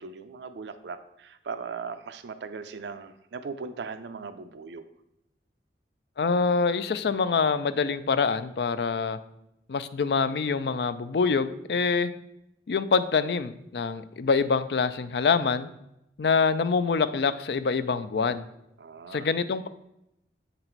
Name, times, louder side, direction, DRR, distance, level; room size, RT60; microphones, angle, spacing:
voice 1, 0.0-4.9 18.8-19.3, right 5 dB, 75° right, 10 dB, 0.4 m, -39 dB
voice 2, 6.2-9.2 9.7-12.1 12.7-15.7 16.2-18.4 19.1-19.7, left 5 dB, 65° left, 12 dB, 0.4 m, -25 dB
7.7 x 4.1 x 4.4 m, 0.84 s
head